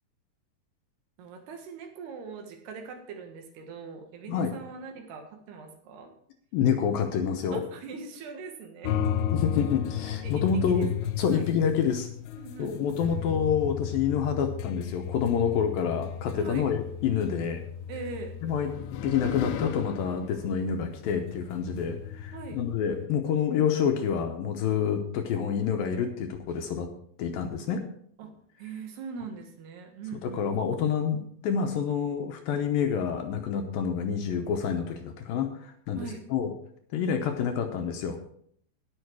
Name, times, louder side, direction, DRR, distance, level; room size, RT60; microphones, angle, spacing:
voice 1, 1.2-6.1 7.5-9.0 10.2-10.9 11.3-11.5 12.4-12.7 16.4-16.7 17.9-18.4 22.3-22.6 28.2-28.3 28.6-30.5 36.0-36.2, right 5 dB, 75° right, 4 dB, 3.6 m, -41 dB
voice 2, 6.5-7.6 9.3-10.9 11.2-12.1 12.6-17.6 18.4-18.7 19.0-26.9 27.2-27.8 30.2-36.5 36.9-38.2, left 7 dB, 75° left, 5 dB, 2.3 m, -28 dB
sound 1, 8.8-23.1, left 9 dB, 90° left, 2.8 m, -34 dB
18.0 x 6.3 x 4.7 m, 0.65 s
omnidirectional pair, 4.8 m